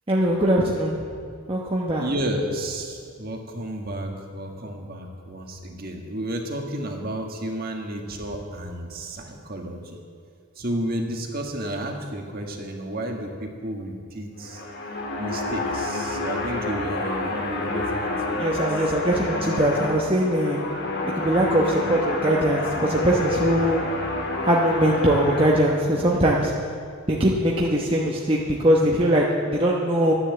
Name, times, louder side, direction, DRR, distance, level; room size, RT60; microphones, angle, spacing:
voice 1, 0.1-1.0 1.5-2.0 18.4-20.6 21.1-23.8 24.4-26.5 27.1-30.1, right 1 dB, 25° right, -3 dB, 1.0 m, -21 dB
voice 2, 2.0-10.0 10.6-14.6 15.2-18.5, right 1 dB, 40° right, 2 dB, 1.6 m, -32 dB
sound 1, 14.4-25.5, left 2 dB, 50° left, 1.6 m, -28 dB
13.0 x 10.0 x 7.7 m, 2.2 s
head